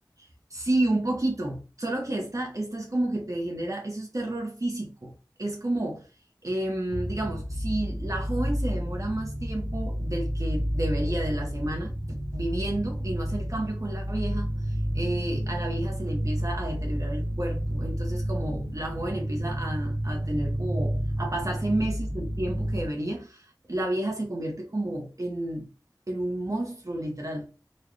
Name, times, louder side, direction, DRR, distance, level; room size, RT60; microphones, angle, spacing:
voice 1, 0.2-6.1 6.4-11.9 12.3-25.7 26.1-27.5, right 1 dB, 45° right, 0.7 m, -31 dB
sound 1, 6.9-22.9, equal, 80° right, 1.0 m, -30 dB
4.0 x 2.2 x 3.1 m
wide cardioid pair, 45°, 8 cm